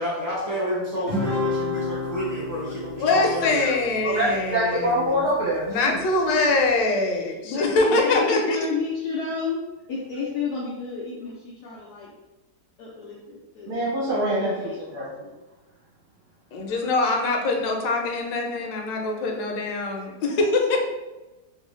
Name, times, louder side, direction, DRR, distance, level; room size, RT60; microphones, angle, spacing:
voice 1, 0.0-3.6, equal, 20° left, -8 dB, 0.5 m, -30 dB
Guitar, 1.1-5.7, left 3 dB, ahead, 1.1 m, -31 dB
voice 2, 3.0-5.2 5.7-8.6 16.5-20.8, left 3 dB, 90° left, 2 dB, 1.3 m, -23 dB
voice 3, 4.0-6.0 13.7-15.1, right 1 dB, 65° right, -8 dB, 1.4 m, -25 dB
voice 4, 7.4-9.6 9.9-12.1 12.8-13.7 14.3-15.3, left 4 dB, 70° left, -5 dB, 1.1 m, -31 dB
3.2 x 2.6 x 3.0 m, 1.1 s
omnidirectional pair, 1.9 m